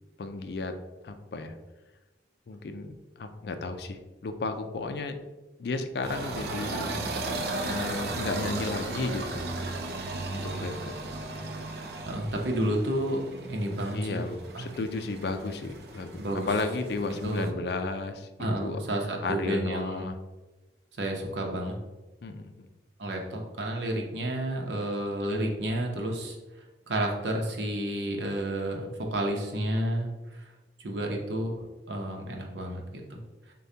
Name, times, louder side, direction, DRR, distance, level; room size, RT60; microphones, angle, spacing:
voice 1, 0.2-0.8 1.0-1.6 2.5-5.2 5.6-6.9 7.6-9.4 10.3-10.9 13.9-18.8 19.2-20.2 22.2-22.7, left 3 dB, 60° left, 8 dB, 0.4 m, -33 dB
sound 1, 6.0-17.5, right 2 dB, 60° right, 0.4 m, -36 dB
voice 2, 12.1-14.2 14.5-14.7 16.2-16.5 17.2-17.6 18.4-20.0 21.0-21.8 23.0-26.4 26.9-30.5 30.8-31.6 31.9-33.2, right 1 dB, 80° right, 1 dB, 0.8 m, -31 dB
6.7 x 2.3 x 2.7 m, 1.1 s
head